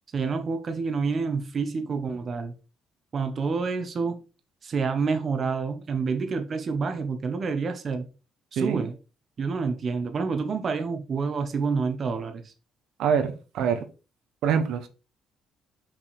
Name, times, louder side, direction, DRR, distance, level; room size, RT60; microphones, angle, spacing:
voice 1, 0.1-2.5 3.1-4.2 4.6-8.1 8.5-8.9 9.4-12.5, right 4 dB, 40° right, 1.1 m, -28 dB
voice 2, 13.0-13.8 14.4-14.9, right 7 dB, 80° right, 1.1 m, -25 dB
5.9 x 5.2 x 4.1 m
cardioid pair, 130°, 0 cm